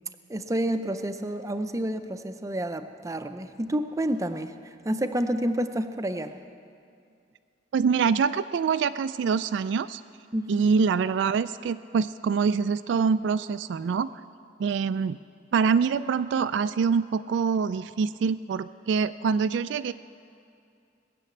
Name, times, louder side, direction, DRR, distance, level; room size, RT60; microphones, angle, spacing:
voice 1, 0.3-6.3 10.3-10.7, right 1 dB, 15° right, 8 dB, 0.5 m, -29 dB
voice 2, 7.7-10.0 10.5-14.1 14.6-15.2 15.5-19.9, right 5 dB, 65° right, 13 dB, 0.3 m, -25 dB
20.5 x 6.8 x 8.4 m, 2.5 s
head